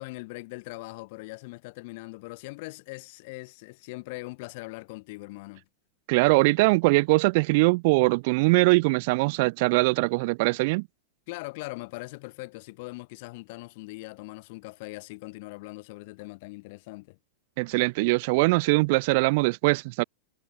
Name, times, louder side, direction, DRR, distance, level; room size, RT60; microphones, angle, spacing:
voice 1, 0.0-5.6 11.3-17.2, left 24 dB, 40° left, 1.7 m, -41 dB
voice 2, 6.1-10.9 17.6-20.0, right 26 dB, 40° right, 0.3 m, -22 dB
supercardioid pair, 180°, 0 cm